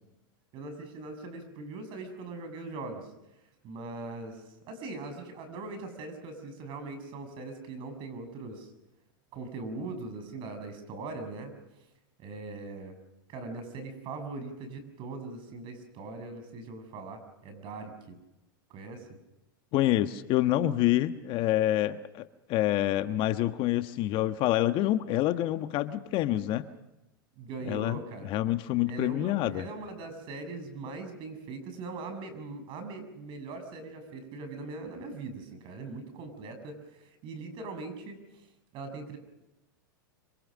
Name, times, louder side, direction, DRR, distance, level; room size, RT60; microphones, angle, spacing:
voice 1, 0.5-3.1 3.6-8.7 9.3-11.5 12.2-12.9 13.3-18.2 18.7-19.1 27.4-28.3 28.9-38.2 38.7-39.2, right 3 dB, 45° right, 8 dB, 6.8 m, -41 dB
voice 2, 19.7-22.2 22.5-26.7 27.6-29.6, left 14 dB, 45° left, 10 dB, 1.3 m, -27 dB
26.0 x 25.5 x 6.4 m, 0.94 s
hypercardioid pair, 105°, 12 cm